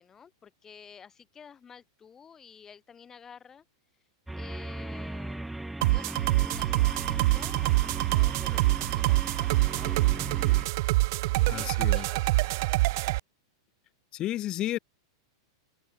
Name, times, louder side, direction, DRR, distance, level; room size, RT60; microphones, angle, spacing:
voice 1, 0.0-3.6 4.3-5.5 5.9-10.3 11.3-12.6, left 7 dB, 20° left, 7.8 m, -51 dB
sound 1, 4.3-10.7, right 1 dB, 5° right, 0.7 m, -38 dB
sound 2, 5.8-13.2, right 21 dB, 60° right, 0.7 m, -25 dB
voice 2, 11.5-12.0 14.1-14.8, left 14 dB, 35° left, 1.5 m, -32 dB
open air
hypercardioid pair, 115°, 2 cm